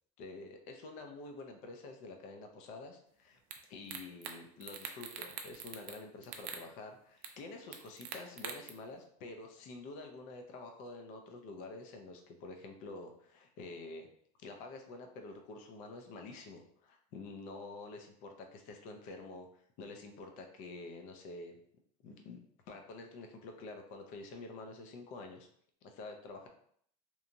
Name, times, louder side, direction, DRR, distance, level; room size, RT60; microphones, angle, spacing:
voice 1, 0.2-3.4 3.7-14.1 14.4-21.5 22.0-22.4 22.7-25.5 25.8-26.5, left 3 dB, 45° left, 4 dB, 0.5 m, -48 dB
sound 1, 3.5-3.6 3.9-4.3 4.6-6.0 6.2-6.6 7.2-7.3 7.7-8.7, right 8 dB, 70° right, 0.4 m, -43 dB
2.9 x 2.3 x 2.5 m, 0.64 s
cardioid pair, 170°, 18 cm